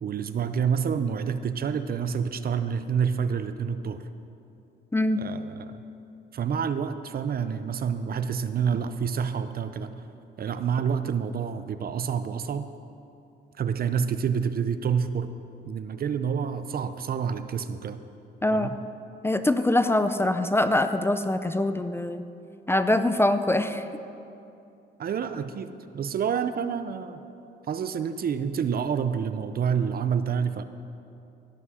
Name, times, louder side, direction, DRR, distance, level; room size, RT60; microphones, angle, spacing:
voice 1, 0.0-4.0 5.2-5.7 6.3-9.9 10.4-12.7 13.6-15.3 15.7-18.0 18.5-18.7 25.0-27.2 27.7-30.6, right 7 dB, 50° right, 11 dB, 0.6 m, -28 dB
voice 2, 4.9-5.2 18.4-18.7 19.2-22.2 22.7-23.9, left 1 dB, 10° left, 10 dB, 0.5 m, -23 dB
16.5 x 6.2 x 6.3 m, 2.7 s
cardioid pair, 90°, 20 cm